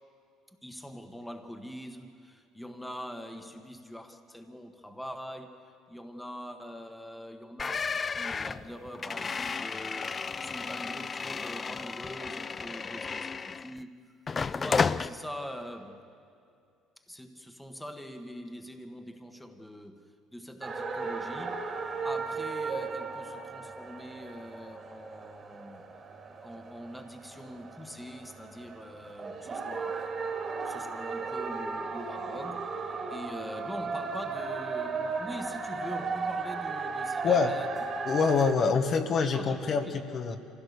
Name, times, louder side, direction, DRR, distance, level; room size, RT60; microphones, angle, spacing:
voice 1, 0.6-13.9 14.5-16.0 17.1-25.8 26.4-30.1 30.6-38.1 39.3-40.4, equal, 5° left, 5 dB, 1.6 m, -43 dB
sound 1, 7.6-13.8 14.3-15.1, left 5 dB, 30° left, 0.5 m, -33 dB
sound 2, 20.6-38.5, right 4 dB, 35° right, 2.7 m, -36 dB
voice 2, 38.1-40.4, left 5 dB, 50° left, 5 dB, 1.5 m, -25 dB
25.0 x 16.0 x 6.8 m, 2.4 s
supercardioid pair, 90°, 0 cm